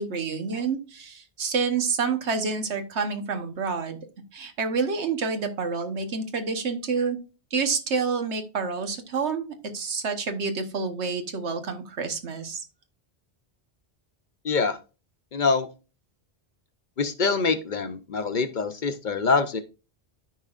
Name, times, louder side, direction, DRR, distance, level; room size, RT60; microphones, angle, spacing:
voice 1, 0.0-4.0 4.3-7.2 7.5-12.6, right 5 dB, 90° right, 7 dB, 1.4 m, -28 dB
voice 2, 14.4-14.8 15.3-15.7 17.0-19.6, left 4 dB, 50° left, 9 dB, 0.8 m, -25 dB
13.5 x 4.7 x 2.4 m, 0.32 s
omnidirectional pair, 1.1 m